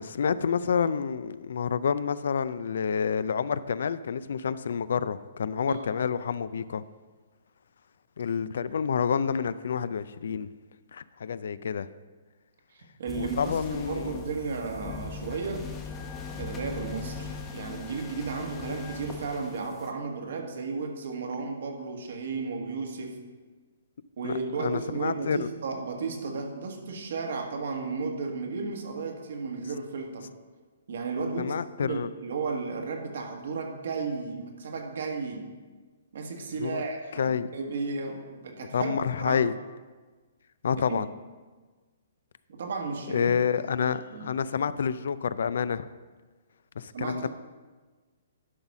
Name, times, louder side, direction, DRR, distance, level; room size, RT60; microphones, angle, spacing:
voice 1, 0.0-6.8 8.2-10.5 10.9-11.9 13.1-14.2 24.2-25.5 31.4-32.1 36.6-36.8 37.2-37.5 38.7-39.5 40.6-41.1 43.1-45.9 46.8-47.3, left 6 dB, 70° left, 16 dB, 0.4 m, -28 dB
voice 2, 12.7-15.7 16.4-23.2 24.2-30.3 30.9-31.5 31.8-35.5 36.1-39.4 40.9-41.0 42.5-44.3 46.9-47.3, right 4 dB, 70° right, 3 dB, 1.5 m, -34 dB
sound 1, 13.1-19.9, left 5 dB, 20° left, 0.9 m, -39 dB
11.0 x 4.1 x 6.0 m, 1.4 s
hypercardioid pair, 150°, 0 cm